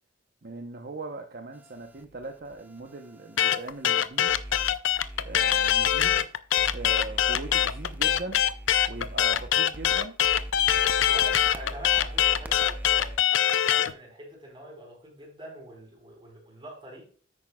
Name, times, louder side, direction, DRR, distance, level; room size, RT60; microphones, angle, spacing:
voice 1, 0.4-4.4 5.2-6.3 6.7-8.4 8.9-10.2, right 3 dB, 50° right, 4 dB, 0.8 m, -40 dB
sound 1, 1.5-6.2 6.6-13.2, equal, 10° right, 0.5 m, -41 dB
sound 2, 3.4-13.9, left 10 dB, 75° left, 0.5 m, -23 dB
voice 2, 11.1-13.1 13.7-17.1, right 1 dB, 25° right, -1 dB, 4.3 m, -44 dB
10.0 x 8.7 x 2.3 m, 0.42 s
head